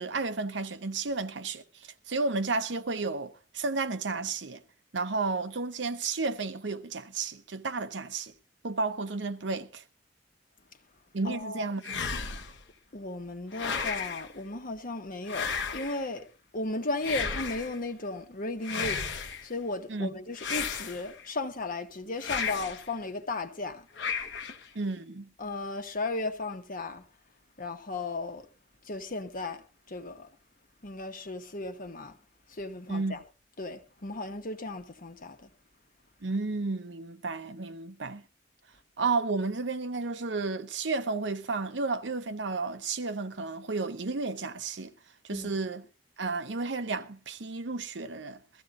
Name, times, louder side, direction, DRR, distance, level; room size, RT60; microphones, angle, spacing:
voice 1, 0.0-1.6 2.1-4.6 4.9-8.3 8.6-9.8 11.1-12.0 19.9-20.1 24.7-25.3 32.9-33.2 36.2-38.2 39.0-44.9 45.2-45.8 46.2-48.4, right 3 dB, 75° right, 0.8 m, -32 dB
voice 2, 11.2-11.7 12.9-16.3 16.5-19.1 19.4-24.1 25.4-27.1 27.6-28.5 28.8-30.3 30.8-32.2 32.5-33.2 33.6-35.5 45.3-45.5, left 2 dB, 50° left, 1.2 m, -35 dB
sound 1, 11.8-12.6 13.5-14.3 15.3-16.1 17.0-17.8 18.6-19.5 20.4-21.3 22.2-22.9 24.0-24.7, left 5 dB, 75° left, 1.1 m, -33 dB
22.0 x 14.5 x 2.5 m
head